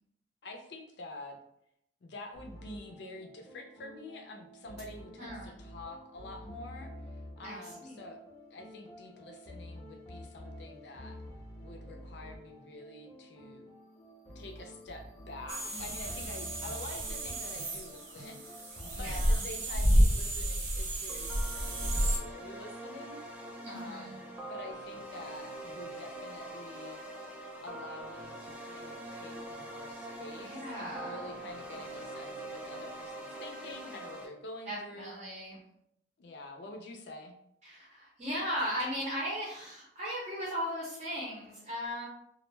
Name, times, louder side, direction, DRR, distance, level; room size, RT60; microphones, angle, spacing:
voice 1, 0.4-1.4 2.0-6.9 7.4-8.2 8.5-11.2 11.6-13.7 14.3-23.4 23.7-27.0 27.6-35.1 36.2-37.3, left 2 dB, 60° left, 4 dB, 0.4 m, -47 dB
sound 1, 2.3-19.3, left 1 dB, 20° left, 0.6 m, -49 dB
voice 2, 5.2-5.5 7.4-8.0 15.7-16.1 18.9-19.4 23.6-24.2 30.4-31.3 34.7-35.6 37.6-42.1, equal, 35° right, -6 dB, 0.6 m, -38 dB
sound 2, 15.5-22.2, equal, 90° right, 0.6 m, -30 dB
sound 3, 21.1-34.2, right 1 dB, 5° right, 0.3 m, -43 dB
2.2 x 2.1 x 3.2 m, 0.75 s
head